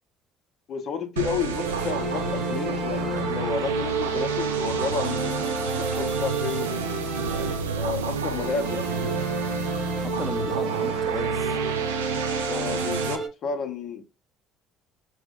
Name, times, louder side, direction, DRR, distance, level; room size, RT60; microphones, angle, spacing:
voice 1, 0.7-7.0 7.8-9.2 12.5-14.0, left 6 dB, 55° left, 0.6 m, -32 dB
sound 1, 1.2-13.2, right 5 dB, 90° right, 0.3 m, -30 dB
sound 2, 1.5-7.9 8.3-13.3, right 4 dB, 50° right, 0.7 m, -30 dB
voice 2, 8.4-8.8 9.9-11.6, right 1 dB, 5° right, 0.5 m, -36 dB
2.8 x 2.1 x 3.5 m
hypercardioid pair, 60°, 0 cm